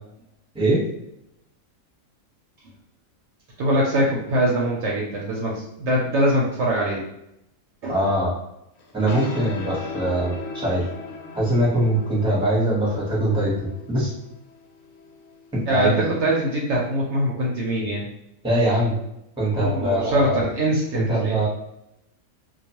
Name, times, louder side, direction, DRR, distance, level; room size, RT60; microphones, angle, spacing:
voice 1, 3.6-7.0 7.8-8.1 15.7-18.1 19.6-21.4, right 1 dB, 65° right, -3 dB, 0.8 m, -23 dB
voice 2, 7.9-8.3 8.9-10.8 11.3-14.1 15.7-16.0 18.4-18.9 19.4-20.4 20.9-21.5, right 1 dB, 5° right, -6 dB, 0.7 m, -22 dB
sound 1, 8.8-16.0, left 3 dB, 75° left, 1.0 m, -38 dB
2.3 x 2.3 x 2.8 m, 0.83 s
omnidirectional pair, 1.4 m